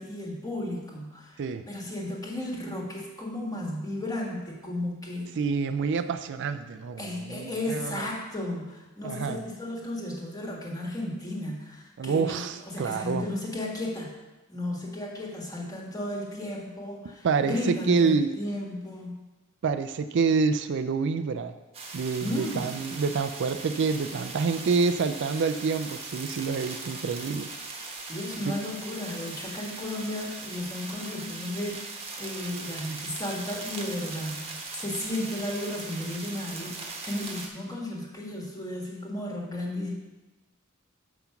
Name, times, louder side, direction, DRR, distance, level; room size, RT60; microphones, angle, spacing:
voice 1, 0.0-5.3 7.0-14.1 14.5-19.2 22.2-22.7 28.0-39.9, left 1 dB, 15° left, -2 dB, 1.6 m, -34 dB
voice 2, 5.4-8.1 9.0-9.4 12.0-13.3 17.2-18.3 19.6-21.5 21.9-27.5 28.4-28.6, right 5 dB, 60° right, 10 dB, 0.4 m, -27 dB
sound 1, 21.7-37.5, right 3 dB, 30° right, 1.2 m, -40 dB
7.1 x 5.7 x 5.8 m, 1.1 s
head